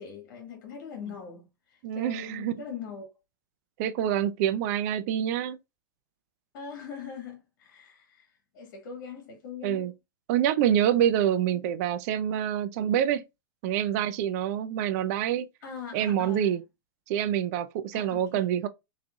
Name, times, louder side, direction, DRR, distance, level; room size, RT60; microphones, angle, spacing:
voice 1, 0.0-3.1 6.5-9.9 11.5-11.6 15.6-16.5 17.9-18.5, left 7 dB, 55° left, 1.6 m, -42 dB
voice 2, 1.8-2.5 3.8-5.6 9.6-9.9 10.3-13.2 13.6-15.5 15.9-16.6 17.1-18.7, right 10 dB, 50° right, 0.5 m, -26 dB
3.7 x 3.2 x 2.3 m
hypercardioid pair, 125°, 11 cm